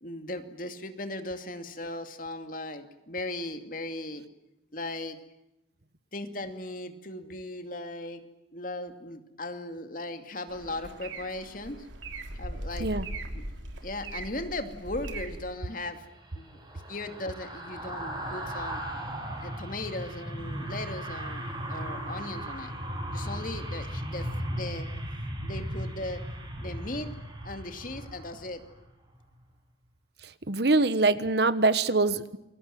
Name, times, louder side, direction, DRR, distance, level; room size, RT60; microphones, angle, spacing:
voice 1, 0.0-4.2 4.7-5.2 6.1-8.2 8.5-11.9 12.3-12.9 13.3-13.4 13.8-16.1 16.3-16.6 16.9-18.8 19.4-21.4 21.7-22.7 23.1-24.9 25.4-26.2 26.6-27.1 27.4-28.6, left 2 dB, 45° left, 7 dB, 2.5 m, -37 dB
sound 1, 10.5-15.4, right 2 dB, 85° right, 3.3 m, -39 dB
sound 2, 15.5-28.8 29.2-29.4, right 1 dB, 25° right, 7.5 m, -37 dB
voice 2, 30.2-32.4, right 3 dB, 60° right, 14 dB, 1.3 m, -24 dB
28.5 x 23.0 x 7.7 m, 0.90 s
head